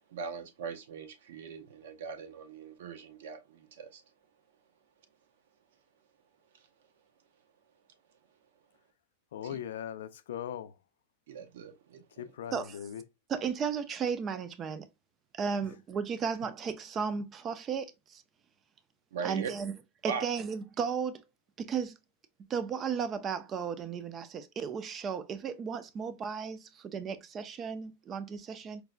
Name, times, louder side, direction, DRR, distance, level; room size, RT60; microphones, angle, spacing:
voice 1, 0.1-4.0 6.5-6.6 9.4-9.6 11.3-12.3 19.1-19.5 20.0-20.3, right 6 dB, 70° right, 0.6 m, -40 dB
voice 2, 9.3-10.7 12.2-13.0, left 9 dB, 80° left, 0.3 m, -39 dB
voice 3, 13.3-14.9 15.3-18.2 19.2-19.7 20.0-21.2 21.6-22.0 22.5-28.8, right 6 dB, 20° right, 0.3 m, -34 dB
4.5 x 2.1 x 2.4 m
supercardioid pair, 160°, 0 cm